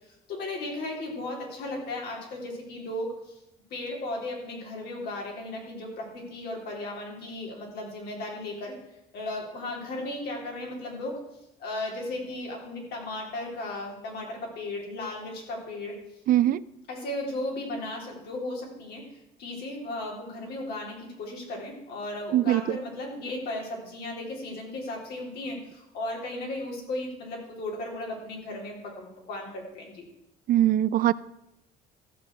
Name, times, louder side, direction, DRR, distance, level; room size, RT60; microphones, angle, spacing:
voice 1, 0.3-3.3 3.7-8.7 9.1-11.2 11.6-15.9 16.9-19.1 19.4-30.0, left 2 dB, 75° left, -1 dB, 3.7 m, -35 dB
voice 2, 16.3-16.6 22.3-22.8 30.5-31.1, right 13 dB, 55° right, 18 dB, 0.4 m, -22 dB
14.0 x 6.6 x 6.2 m, 0.86 s
cardioid pair, 110°, 17 cm